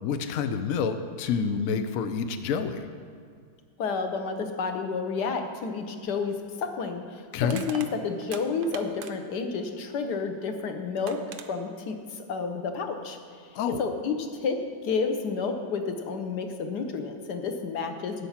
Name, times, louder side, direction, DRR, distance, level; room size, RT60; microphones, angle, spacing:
voice 1, 0.0-2.9 7.3-7.6 13.5-13.8, left 6 dB, 85° left, 8 dB, 0.7 m, -28 dB
voice 2, 3.8-7.0 7.4-11.2 11.5-13.2 13.8-14.6 14.8-18.3, left 5 dB, 60° left, 6 dB, 1.4 m, -30 dB
Crushing, 6.1-6.2 7.4-9.4 10.6-10.7 11.1-11.5, right 9 dB, 90° right, 1.5 m, -41 dB
12.0 x 8.3 x 5.7 m, 2.1 s
omnidirectional pair, 2.2 m